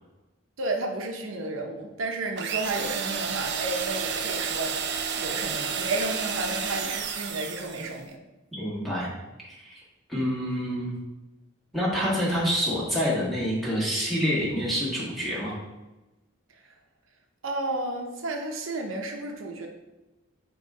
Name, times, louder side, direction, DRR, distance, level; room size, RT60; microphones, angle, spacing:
voice 1, 0.6-4.9 5.1-8.2 17.4-19.7, right 2 dB, 85° right, 2 dB, 0.8 m, -32 dB
sound 1, 2.4-8.0, right 6 dB, 60° right, 0.5 m, -31 dB
voice 2, 8.5-9.1 9.4-9.8 10.1-10.9 11.7-15.6, equal, ahead, -7 dB, 2.0 m, -27 dB
9.2 x 3.1 x 3.8 m, 1.1 s
head